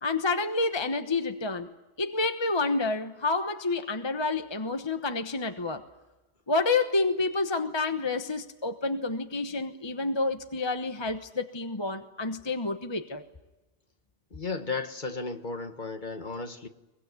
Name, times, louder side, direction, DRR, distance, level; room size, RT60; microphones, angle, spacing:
voice 1, 0.0-1.7 2.0-5.8 6.5-13.2, left 3 dB, 25° left, 1.1 m, -29 dB
voice 2, 14.3-16.7, left 4 dB, 40° left, 1.6 m, -34 dB
23.5 x 23.0 x 9.4 m
omnidirectional pair, 1.2 m